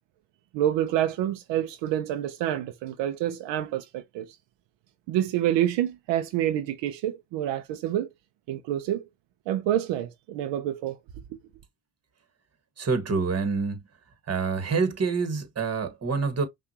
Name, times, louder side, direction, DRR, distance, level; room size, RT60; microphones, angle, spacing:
voice 1, 0.5-4.4 5.1-8.1 8.5-9.0 9.5-11.0, right 12 dB, 75° right, 0.7 m, -27 dB
voice 2, 12.8-13.8 14.3-16.5, right 4 dB, 35° right, 1.6 m, -26 dB
5.8 x 2.6 x 2.8 m
supercardioid pair, 70°, 44 cm